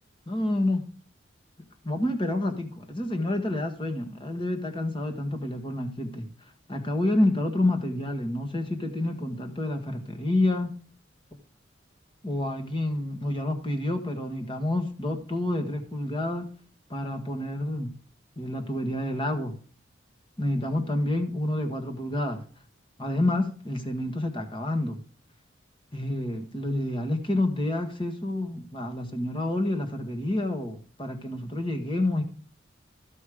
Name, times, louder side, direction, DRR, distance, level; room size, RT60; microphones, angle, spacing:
voice 1, 0.3-0.8 1.8-6.3 6.7-10.7 12.2-16.5 16.9-17.9 18.4-19.6 20.4-22.4 23.0-25.0 25.9-32.2, left 1 dB, 25° left, 1.6 m, -28 dB
14.5 x 5.4 x 5.0 m
head